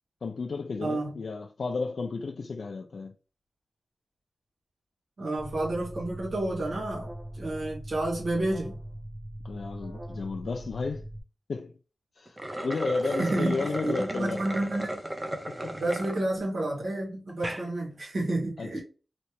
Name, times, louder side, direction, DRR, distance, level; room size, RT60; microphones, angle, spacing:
voice 1, 0.2-3.1 9.4-11.1 11.5-11.8 12.2-14.4 15.3-15.8 18.6-18.8, left 4 dB, 75° left, 0.4 m, -33 dB
voice 2, 0.8-1.2 5.2-8.8 13.2-15.0 15.7-18.8, right 1 dB, 75° right, 1.6 m, -30 dB
Alarm, 5.4-11.2, right 1 dB, 60° right, 0.9 m, -41 dB
sound 1, 12.3-16.2 16.7-16.8 17.3-17.6, right 1 dB, 20° right, 0.6 m, -34 dB
3.2 x 2.8 x 2.9 m
wide cardioid pair, 90°, 0 cm